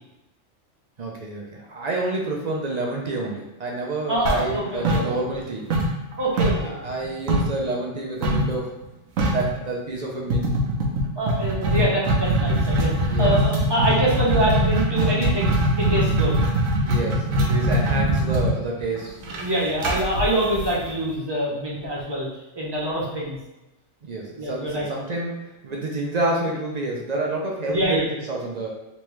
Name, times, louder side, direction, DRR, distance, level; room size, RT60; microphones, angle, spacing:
voice 1, 1.0-5.7 6.5-8.7 9.2-10.5 13.1-13.4 16.8-19.2 24.0-28.7, right 2 dB, 55° right, -2 dB, 0.5 m, -28 dB
voice 2, 4.1-5.1 6.2-6.8 11.2-16.4 19.3-22.3 22.6-23.4 24.4-24.9 27.7-28.0, right 1 dB, 25° right, -5 dB, 0.8 m, -25 dB
sound 1, 4.3-5.4 5.7-7.6 8.2-8.5 8.8-8.9 9.2-9.5 10.3-21.1, right 1 dB, 85° right, 1.1 m, -22 dB
3.4 x 3.0 x 3.1 m, 0.98 s
omnidirectional pair, 1.3 m